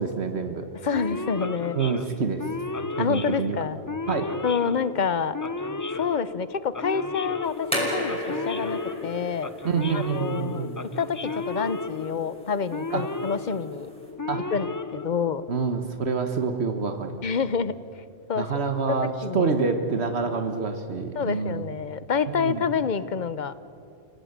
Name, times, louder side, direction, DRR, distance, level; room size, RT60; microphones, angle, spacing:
voice 1, 0.0-0.7 1.7-2.4 3.0-3.6 4.1-4.3 9.6-10.8 12.9-13.0 14.3-14.4 15.5-17.2 18.4-21.7 22.3-22.6, right 5 dB, 80° right, 6 dB, 1.7 m, -27 dB
voice 2, 0.8-1.8 3.0-3.8 4.4-5.4 5.9-9.5 9.9-10.7 11.0-13.9 14.5-14.7 14.9-15.4 17.2-17.8 18.3-18.5 18.9-19.0 19.2-19.5 21.1-23.5, left 6 dB, 50° left, 15 dB, 0.9 m, -27 dB
Male speech man speaking / Siren, 0.9-15.6, left 3 dB, 20° left, 0.6 m, -34 dB
sound 1, 7.4-14.1, equal, 5° left, 5.4 m, -35 dB
29.5 x 17.5 x 9.6 m, 2.7 s
omnidirectional pair, 1.1 m